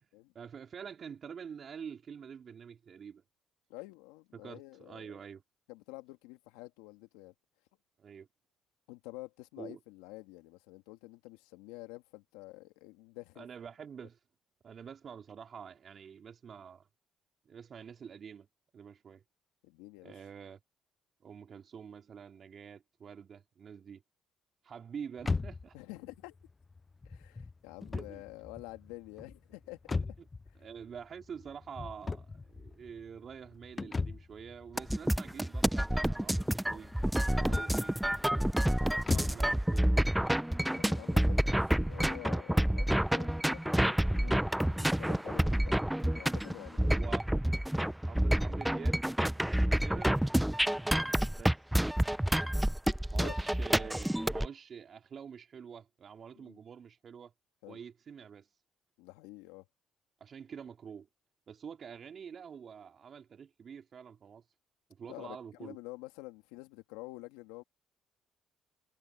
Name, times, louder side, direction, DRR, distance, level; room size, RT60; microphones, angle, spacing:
voice 1, 0.3-3.2 4.3-5.4 8.0-8.3 9.6-9.8 13.4-14.2 14.6-16.9 17.4-18.5 18.7-19.2 20.0-20.6 21.2-24.0 24.6-25.7 27.9-28.2 30.6-36.9 37.3-37.9 38.9-40.0 46.9-47.2 48.1-49.1 49.5-50.2 51.3-51.6 53.1-57.3 57.7-58.5 60.2-61.1 61.5-64.4 64.9-65.8, right 7 dB, 50° right, 3.0 m, -47 dB
voice 2, 3.7-5.1 5.7-7.3 8.9-13.5 14.0-14.1 19.6-20.2 25.7-26.4 27.0-30.2 37.4-37.6 40.6-47.2 53.2-53.4 56.4-56.6 57.6-57.8 59.0-59.7 65.1-67.6, left 21 dB, 85° left, 2.4 m, -49 dB
sound 1, 25.2-39.5, left 4 dB, 30° left, 0.4 m, -40 dB
sound 2, 34.8-54.5, right 1 dB, 5° right, 0.7 m, -29 dB
supercardioid pair, 60°, 0 cm